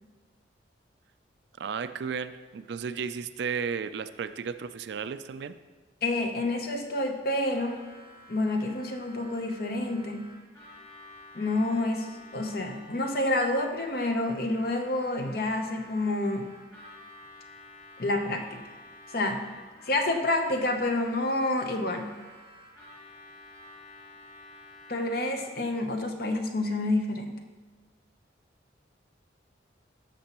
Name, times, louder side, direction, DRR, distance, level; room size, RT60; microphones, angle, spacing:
voice 1, 1.6-5.6, right 6 dB, 65° right, 12 dB, 0.3 m, -34 dB
voice 2, 6.0-7.8 8.3-10.3 11.3-12.1 12.3-16.5 18.0-18.6 19.1-19.4 19.9-22.2 24.9-27.4, left 2 dB, 50° left, 5 dB, 0.8 m, -28 dB
Harmonica, 7.5-25.7, left 1 dB, 25° left, 2.7 m, -51 dB
12.5 x 6.8 x 3.0 m, 1.4 s
head